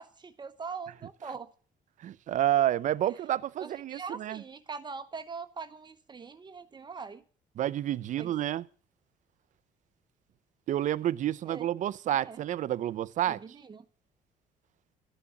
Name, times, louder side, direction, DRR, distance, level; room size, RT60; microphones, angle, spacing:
voice 1, 0.0-1.5 3.6-7.2 8.2-8.3 11.4-11.7 12.1-12.4 13.3-13.8, right 5 dB, 30° right, 1.0 m, -42 dB
voice 2, 2.0-4.4 7.6-8.7 10.7-13.4, right 12 dB, 60° right, 0.6 m, -29 dB
12.0 x 7.0 x 9.0 m
cardioid pair, 100°, 15 cm